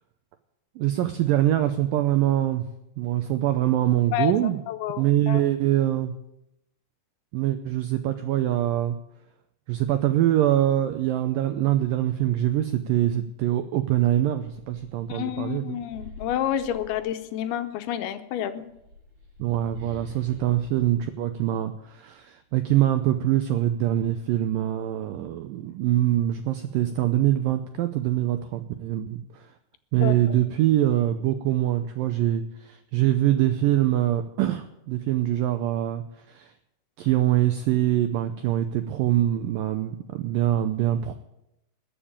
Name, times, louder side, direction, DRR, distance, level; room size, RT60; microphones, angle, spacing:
voice 1, 0.8-2.7 3.0-4.6 5.0-6.1 7.3-9.0 9.7-15.8 19.4-29.5 29.9-36.5 37.0-41.1, right 12 dB, 85° right, 8 dB, 2.0 m, -24 dB
voice 2, 4.1-5.4 15.1-18.6 30.0-30.4, left 11 dB, 75° left, 9 dB, 2.5 m, -29 dB
sound 1, 13.4-13.5 13.9-17.6 18.5-22.1, left 1 dB, 35° right, 5.6 m, -46 dB
20.5 x 7.1 x 8.7 m, 0.86 s
omnidirectional pair, 4.9 m